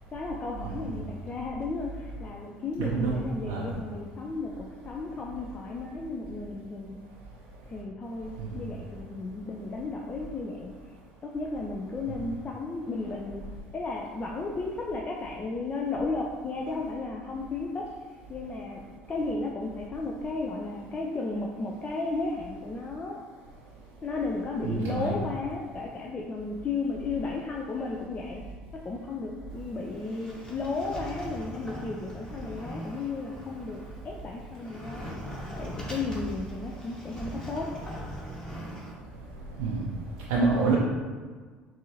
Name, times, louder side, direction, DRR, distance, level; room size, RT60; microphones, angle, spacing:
voice 1, 0.1-7.0 7.7-10.7 11.2-13.4 13.7-17.9 18.3-18.8 19.1-23.2 24.0-28.4 28.8-35.2 35.6-37.7, left 3 dB, 30° left, -1 dB, 0.5 m, -34 dB
voice 2, 0.6-1.0 2.8-3.1 3.5-3.6 8.4-8.5 24.6-25.1 39.6-39.8 40.3-40.8, right 4 dB, 75° right, -4 dB, 0.5 m, -27 dB
Sliding door, 29.5-38.9, right 1 dB, 15° left, 1.2 m, -41 dB
4.8 x 2.7 x 2.7 m, 1.5 s
hypercardioid pair, 70°, 5 cm